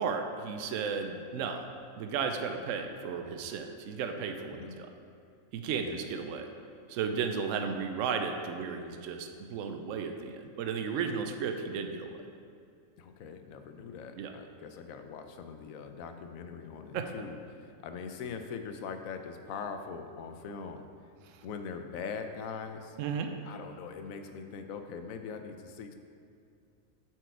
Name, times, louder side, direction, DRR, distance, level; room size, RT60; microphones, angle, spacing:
voice 1, 0.0-1.7 2.0-4.9 5.5-6.5 6.9-12.1 14.2-14.3 16.9-17.0 23.0-23.3, right 6 dB, 70° right, 5 dB, 0.9 m, -34 dB
voice 2, 4.5-4.8 5.8-6.1 13.0-20.9 21.4-23.0 23.4-25.9, left 5 dB, 80° left, 7 dB, 1.0 m, -42 dB
7.7 x 4.7 x 4.6 m, 2.4 s
omnidirectional pair, 1.4 m